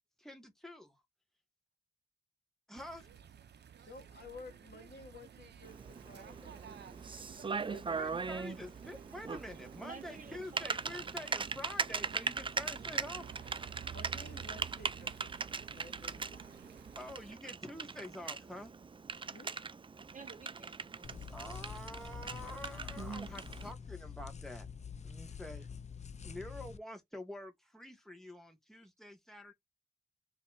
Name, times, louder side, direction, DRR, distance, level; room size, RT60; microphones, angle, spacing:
voice 1, 0.2-1.0 2.7-3.1 8.0-13.2 17.0-18.7 21.3-24.6 25.0-25.7 26.2-29.5, left 1 dB, ahead, 1.6 m, -47 dB
sound 1, 2.7-17.3, right 8 dB, 80° right, 0.6 m, -52 dB
voice 2, 3.8-8.4 13.9-16.6 19.2-19.6 25.5-25.7, left 3 dB, 65° left, 1.9 m, -54 dB
Typing, 5.6-23.7, right 5 dB, 30° right, 0.4 m, -40 dB
voice 3, 9.8-10.8 20.1-21.4 23.6-23.8, right 5 dB, 50° right, 1.4 m, -52 dB
sound 2, 21.0-26.8, left 6 dB, 40° left, 0.4 m, -46 dB
4.2 x 3.1 x 2.6 m
cardioid pair, 75°, 17 cm